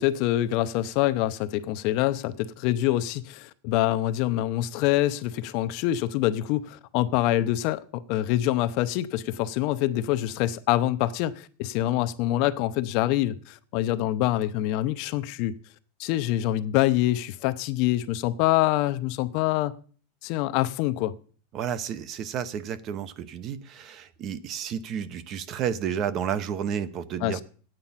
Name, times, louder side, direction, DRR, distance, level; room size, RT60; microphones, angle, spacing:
voice 1, 0.0-15.6 16.0-19.7 20.2-21.2 27.2-27.4, left 14 dB, 45° left, 0.6 m, -25 dB
voice 2, 21.5-27.4, right 8 dB, 35° right, 0.8 m, -31 dB
10.5 x 9.0 x 5.7 m
supercardioid pair, 160°, 0 cm